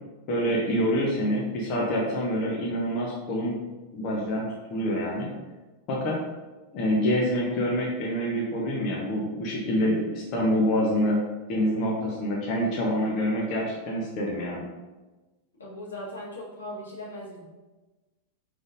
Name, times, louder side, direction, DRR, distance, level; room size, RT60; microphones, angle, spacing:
voice 1, 0.3-3.6 3.9-4.4 4.7-5.3 5.9-6.2 6.7-11.2 11.5-14.6, equal, 40° left, -3 dB, 0.8 m, -26 dB
voice 2, 15.6-17.4, left 1 dB, 70° left, -4 dB, 1.2 m, -38 dB
5.1 x 3.3 x 2.6 m, 1.2 s
figure-of-eight pair, 90°, 0 cm